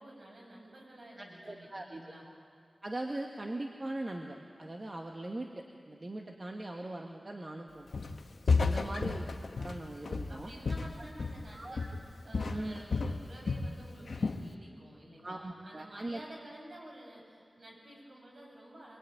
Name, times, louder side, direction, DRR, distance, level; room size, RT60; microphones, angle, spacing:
voice 1, 0.0-2.2 8.4-9.0 10.3-11.9 12.2-19.0, right 1 dB, 60° right, -1 dB, 7.7 m, -51 dB
voice 2, 1.2-2.1 2.8-7.9 8.6-10.5 11.5-11.9 12.5-12.8 15.2-16.2, right 1 dB, 35° right, 2 dB, 1.6 m, -40 dB
Walk footsteps, 7.9-8.2 8.5-11.5 11.8-12.1 12.3-13.7 14.1-14.5, left 4 dB, 85° left, 1.2 m, -32 dB
25.0 x 22.0 x 9.3 m, 2.2 s
wide cardioid pair, 100°, 0 cm